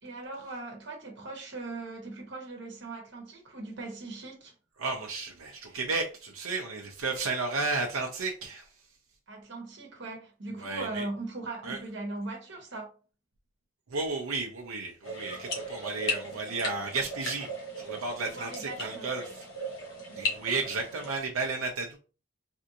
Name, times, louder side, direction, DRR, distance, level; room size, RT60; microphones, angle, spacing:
voice 1, 0.0-4.5 9.3-12.9 18.2-19.1 20.1-20.2, right 2 dB, 55° right, 1.2 m, -39 dB
voice 2, 4.8-8.7 10.6-11.0 11.6-11.8 13.9-17.5 17.8-19.5 20.1-22.0, right 3 dB, 85° right, 0.6 m, -33 dB
sound 1, 15.0-21.1, left 1 dB, 60° left, 1.0 m, -37 dB
3.4 x 2.6 x 2.8 m
head